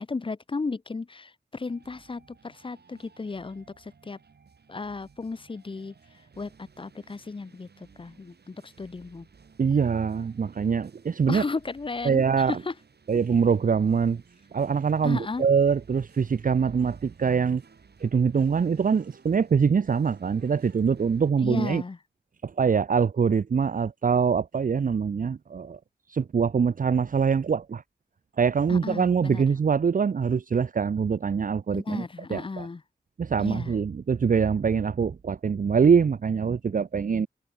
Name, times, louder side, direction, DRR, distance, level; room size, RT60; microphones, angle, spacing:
voice 1, 0.0-4.2 4.7-5.9 6.4-6.5 6.8-9.3 11.3-12.7 15.0-15.4 21.4-22.0 28.7-29.4 31.7-32.8 33.4-33.7, left 4 dB, 30° left, 0.6 m, -34 dB
sound 1, 1.7-21.3, right 5 dB, 80° right, 5.6 m, -57 dB
voice 2, 9.6-11.4 12.0-12.6 13.1-14.2 14.5-17.6 18.0-21.8 22.4-25.8 26.1-27.8 28.4-32.7 33.2-37.3, right 6 dB, 55° right, 0.6 m, -24 dB
wide cardioid pair, 90°, 16 cm